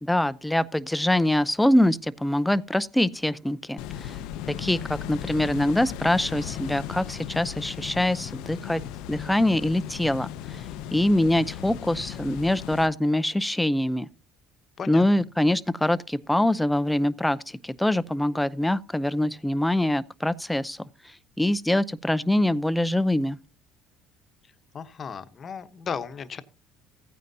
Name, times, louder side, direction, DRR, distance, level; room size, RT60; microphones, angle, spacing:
voice 1, 0.0-4.2 4.6-8.8 9.1-10.6 10.9-14.1 14.9-20.8 21.4-23.4, left 1 dB, 5° left, 0.6 m, -24 dB
sound 1, 3.8-12.9, left 10 dB, 75° left, 0.7 m, -36 dB
voice 2, 24.7-26.4, left 6 dB, 40° left, 1.1 m, -35 dB
15.0 x 9.3 x 2.8 m
supercardioid pair, 100°, 0 cm